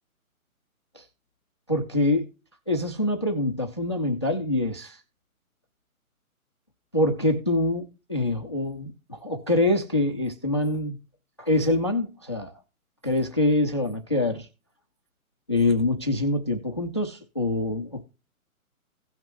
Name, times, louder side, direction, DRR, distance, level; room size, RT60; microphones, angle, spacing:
voice 1, 1.7-2.3 2.7-5.0 6.9-11.0 11.4-12.5 13.0-14.5 15.5-18.0, left 2 dB, 20° left, 0.4 m, -25 dB
16.5 x 6.0 x 3.0 m
hypercardioid pair, 160°, 44 cm